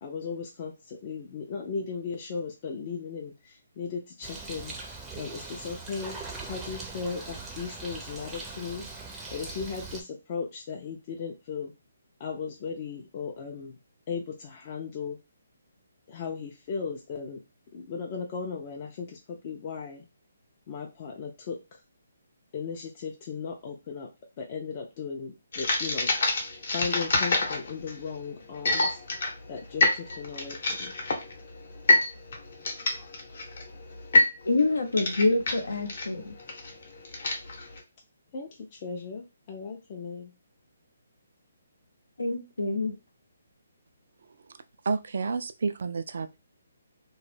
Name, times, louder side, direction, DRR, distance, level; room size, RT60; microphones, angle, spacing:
voice 1, 0.0-4.8 5.2-6.2 6.5-8.8 9.3-11.7 12.2-13.8 14.1-15.2 16.1-17.4 17.7-20.1 20.7-21.8 22.5-24.1 24.4-26.1 26.7-29.0 29.5-30.9 38.3-40.3, left 5 dB, 35° left, 0.5 m, -36 dB
Bird, 4.2-10.0, right 3 dB, 10° right, 0.5 m, -41 dB
sound 1, 25.5-37.8, left 2 dB, 60° left, 0.8 m, -27 dB
voice 2, 34.4-36.3 42.2-43.0, left 2 dB, 85° left, 0.7 m, -26 dB
voice 3, 44.9-46.4, right 4 dB, 65° right, 0.3 m, -30 dB
2.2 x 2.0 x 3.2 m
hypercardioid pair, 150°, 0 cm